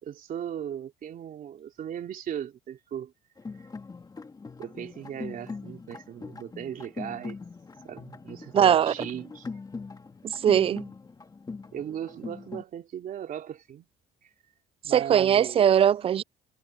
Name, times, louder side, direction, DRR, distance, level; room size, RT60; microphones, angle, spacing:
voice 1, 0.0-3.1 4.6-7.4 7.8-9.5 11.7-13.9 14.2-14.3 14.8-15.7, right 9 dB, 55° right, 3.1 m, -37 dB
sound 1, 3.4-12.6, left 4 dB, 20° left, 2.2 m, -41 dB
voice 2, 8.5-8.9 10.2-10.9 14.9-16.2, right 9 dB, 35° right, 0.3 m, -21 dB
cardioid pair, 110°, 17 cm